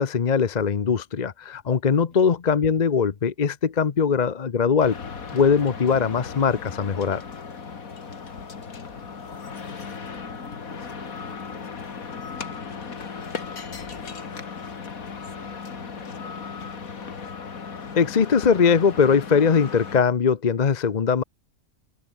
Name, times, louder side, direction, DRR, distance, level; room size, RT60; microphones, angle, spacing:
voice 1, 0.0-5.0 5.3-7.2 17.9-21.2, left 6 dB, 35° left, 0.8 m, -21 dB
sound 1, 4.8-20.0, left 5 dB, 90° left, 2.4 m, -36 dB
voice 2, 8.1-9.3 10.1-14.6 15.2-17.0, left 2 dB, 70° left, 5.3 m, -49 dB
open air
omnidirectional pair, 1.4 m